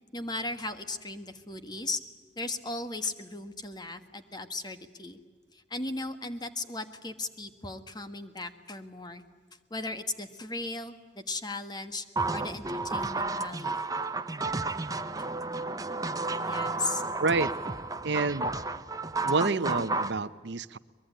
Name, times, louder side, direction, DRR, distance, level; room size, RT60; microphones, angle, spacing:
voice 1, 0.1-2.0 2.4-5.2 5.5-9.2 9.7-12.0 12.3-13.8 16.4-17.0, left 2 dB, 25° left, 9 dB, 1.5 m, -36 dB
sound 1, 12.2-20.1, right 3 dB, 20° right, 0.8 m, -32 dB
voice 2, 17.2-17.5 18.0-18.5 19.2-20.8, right 3 dB, 70° right, 15 dB, 0.7 m, -28 dB
23.5 x 22.0 x 10.0 m, 1.5 s
head